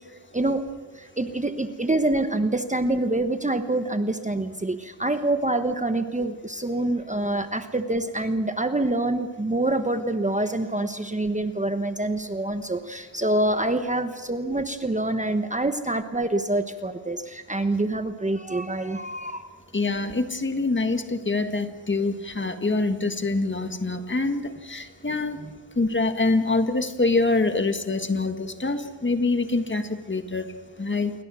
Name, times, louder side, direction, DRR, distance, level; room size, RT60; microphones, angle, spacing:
voice 1, 0.3-0.6 0.9-19.5 25.4-25.5, right 2 dB, 15° right, 8 dB, 1.1 m, -26 dB
voice 2, 19.7-25.4 25.8-30.5 30.8-31.1, left 3 dB, 25° left, 8 dB, 1.7 m, -25 dB
28.5 x 22.5 x 6.3 m, 1.3 s
wide cardioid pair, 110°, 44 cm